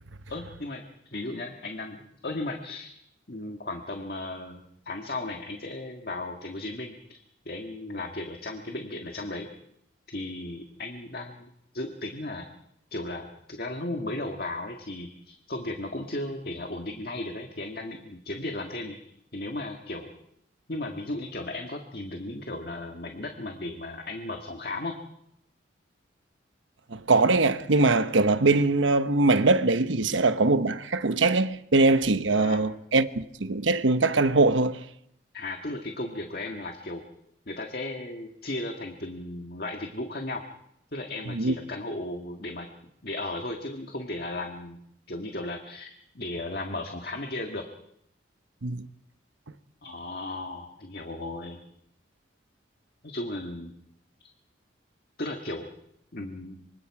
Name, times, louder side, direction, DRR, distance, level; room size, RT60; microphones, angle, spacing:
voice 1, 0.3-0.8 1.1-2.0 2.2-2.9 3.3-7.2 7.5-9.5 10.1-12.5 12.9-19.0 19.3-20.1 20.7-24.9 32.4-32.7 35.3-37.0 37.5-40.4 40.9-42.7 43.0-44.8 45.1-47.6 49.8-51.6 53.0-53.7 55.2-55.7 56.1-56.6, left 2 dB, 50° left, 1.7 m, -35 dB
voice 2, 26.9-34.8 41.3-41.5 48.6-48.9, right 3 dB, 80° right, 1.1 m, -22 dB
26.5 x 25.0 x 4.8 m
head